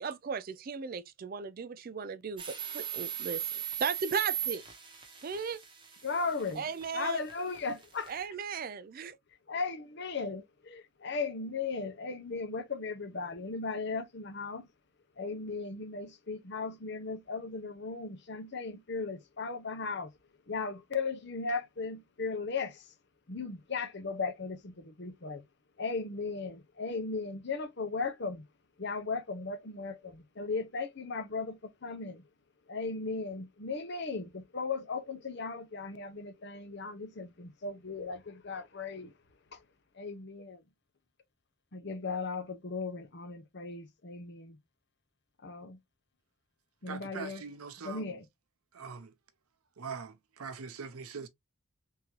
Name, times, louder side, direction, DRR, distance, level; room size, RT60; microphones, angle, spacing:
voice 1, 0.0-4.6 5.2-5.6 6.5-7.2 8.1-9.2, right 6 dB, 40° right, 0.3 m, -36 dB
sound 1, 2.4-8.2, right 9 dB, 20° right, 0.9 m, -39 dB
voice 2, 6.0-6.6 6.9-8.1 9.5-14.7 15.2-20.1 20.5-22.8 23.3-25.4 25.8-28.4 28.8-32.2 32.7-39.1 39.5-39.6 40.0-40.6 41.7-44.6 45.4-45.8 46.8-47.4 47.8-48.2, left 4 dB, 50° left, 0.8 m, -37 dB
voice 3, 46.8-48.2 48.7-49.1 49.8-51.3, right 5 dB, 85° right, 0.7 m, -42 dB
3.7 x 2.9 x 3.0 m
head